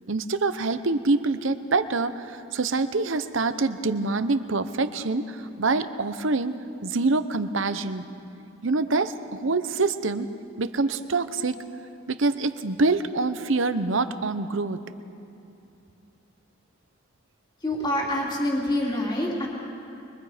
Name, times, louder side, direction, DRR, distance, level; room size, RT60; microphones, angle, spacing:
voice 1, 0.1-8.1 8.6-10.3 10.6-11.6 12.1-14.8, right 3 dB, 65° right, 11 dB, 0.8 m, -25 dB
voice 2, 17.6-19.5, left 1 dB, 20° left, -3 dB, 3.2 m, -26 dB
24.5 x 23.0 x 5.1 m, 2.8 s
head